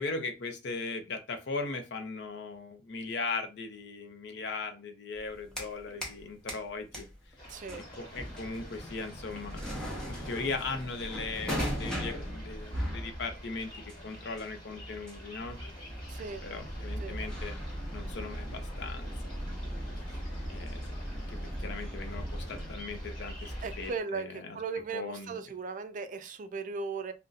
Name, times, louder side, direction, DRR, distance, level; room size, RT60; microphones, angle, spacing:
voice 1, 0.0-7.4 7.8-9.6 10.1-15.6 16.4-17.6 17.9-19.5 20.1-20.2 20.5-24.6 24.9-25.5, left 3 dB, 65° left, 0.6 m, -39 dB
sound 1, 5.1-6.2 6.5-23.9, equal, 5° left, 0.7 m, -38 dB
sound 2, 7.4-24.0, equal, 25° left, 1.4 m, -51 dB
voice 2, 7.5-7.8 16.1-16.4 17.0-17.2 23.6-27.1, right 4 dB, 40° right, 0.3 m, -37 dB
2.5 x 2.2 x 3.9 m
head